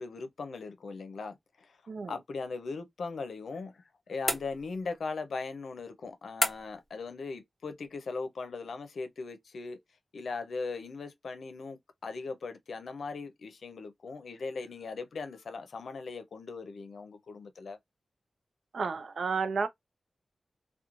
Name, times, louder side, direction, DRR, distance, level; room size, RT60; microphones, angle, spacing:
voice 1, 0.0-9.8 10.1-17.8, left 4 dB, 85° left, 0.5 m, -39 dB
sound 1, 4.3-5.0 6.4-6.9, left 1 dB, 15° left, 1.0 m, -32 dB
voice 2, 18.7-19.7, right 5 dB, 75° right, 0.4 m, -31 dB
3.0 x 2.2 x 2.4 m
wide cardioid pair, 105°, 0 cm